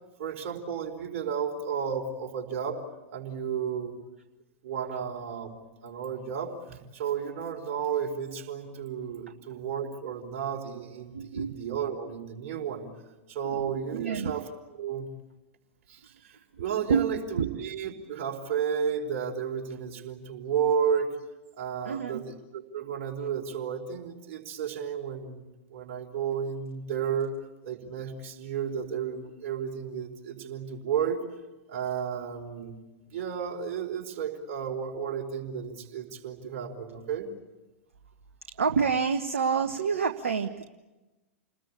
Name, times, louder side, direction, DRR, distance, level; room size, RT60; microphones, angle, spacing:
voice 1, 0.2-2.8 3.1-3.9 4.6-5.5 5.8-12.9 13.3-14.5 14.8-15.1 15.9-21.2 21.6-27.3 27.6-31.2 31.7-32.8 33.1-37.3, right 7 dB, 50° right, 2 dB, 4.7 m, -32 dB
voice 2, 11.1-11.6 13.4-14.3 16.5-16.6 16.9-17.5 21.8-22.3 38.5-40.7, right 6 dB, 70° right, 7 dB, 1.2 m, -28 dB
29.5 x 20.5 x 8.6 m, 1.1 s
figure-of-eight pair, 95°, 7 cm